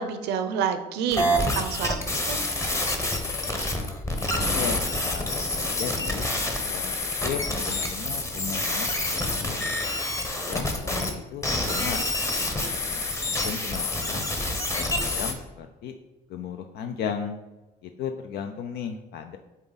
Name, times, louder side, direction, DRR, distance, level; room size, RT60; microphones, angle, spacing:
voice 1, 0.0-2.0 2.3-2.4, right 7 dB, 90° right, 10 dB, 0.7 m, -28 dB
sound 1, 1.1-11.1 11.4-15.3, left 1 dB, 15° left, 1.0 m, -27 dB
voice 2, 4.3-5.3 5.7-6.3 6.7-6.9 7.2-9.7 10.3-12.0 12.4-13.1 13.4-14.3 14.8-15.9 16.3-17.4 17.8-19.4, left 7 dB, 70° left, 6 dB, 0.5 m, -36 dB
7.2 x 4.0 x 4.0 m, 1.1 s
cardioid pair, 110°, 17 cm